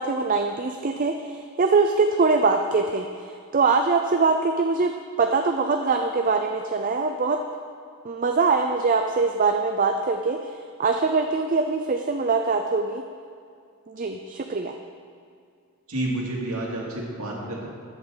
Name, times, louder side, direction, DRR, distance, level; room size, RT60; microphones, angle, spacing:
voice 1, 0.0-4.9 5.2-7.4 8.0-10.5 10.8-13.0 13.9-14.7, right 4 dB, 40° right, 5 dB, 0.5 m, -23 dB
voice 2, 15.9-17.7, right 1 dB, 75° right, -3 dB, 2.5 m, -29 dB
14.0 x 8.7 x 3.9 m, 2.3 s
head